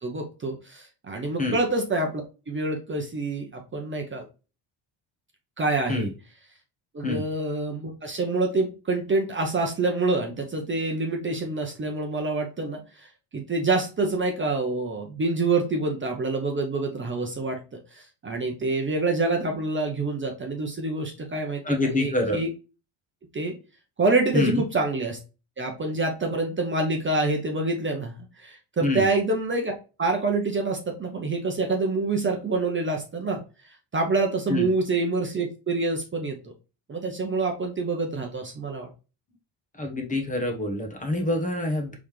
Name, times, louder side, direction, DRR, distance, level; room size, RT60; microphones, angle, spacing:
voice 1, 0.0-4.2 5.6-6.1 6.9-13.1 13.3-21.6 21.9-22.5 23.3-23.6 24.0-25.2 25.6-29.7 30.0-36.4 36.9-38.9, right 3 dB, 25° right, 2 dB, 0.8 m, -27 dB
voice 2, 21.6-22.4 24.3-24.6 28.8-29.1 34.5-34.7 39.8-42.0, left 2 dB, 15° left, 2 dB, 1.0 m, -26 dB
4.1 x 3.6 x 3.2 m, 0.32 s
cardioid pair, 125°, 48 cm